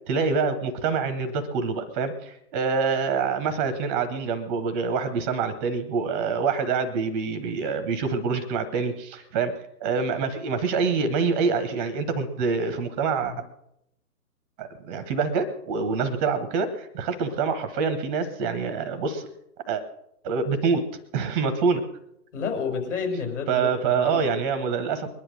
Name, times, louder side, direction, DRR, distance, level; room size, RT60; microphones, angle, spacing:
voice 1, 0.1-9.5 9.8-13.3 14.6-19.3 19.7-19.8 20.2-20.8 21.1-21.8 23.5-25.1, right 5 dB, 10° right, 10 dB, 0.5 m, -26 dB
voice 2, 22.3-24.2, left 5 dB, 50° left, 3 dB, 5.2 m, -30 dB
21.0 x 10.0 x 6.2 m, 0.80 s
figure-of-eight pair, 135°, 45 cm